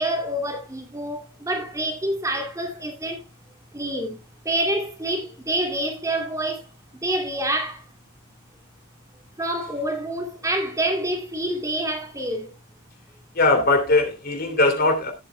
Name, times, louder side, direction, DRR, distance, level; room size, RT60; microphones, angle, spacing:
voice 1, 0.0-3.2 3.7-4.2 4.5-6.6 7.0-7.8 9.4-12.5, right 1 dB, 15° right, 2.5 m, -27 dB
voice 2, 13.3-15.1, left 2 dB, 50° left, 2.7 m, -20 dB
17.0 x 8.6 x 2.2 m
head